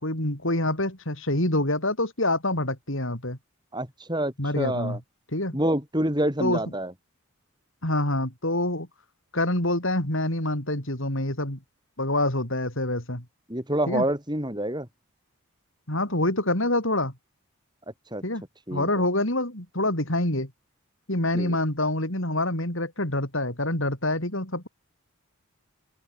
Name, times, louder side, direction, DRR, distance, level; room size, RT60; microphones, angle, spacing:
voice 1, 0.0-3.4 4.4-5.0 5.3-5.6 6.4-6.6 7.8-8.9 9.3-11.6 12.0-13.2 13.9-14.0 15.9-17.1 18.2-18.4 18.7-20.5 21.1-24.7, left 1 dB, 60° left, 5.3 m, -26 dB
voice 2, 3.7-5.0 5.5-6.9 13.5-14.9 18.1-18.2 18.7-18.9 21.3-21.6, right 1 dB, 20° right, 6.2 m, -27 dB
open air
head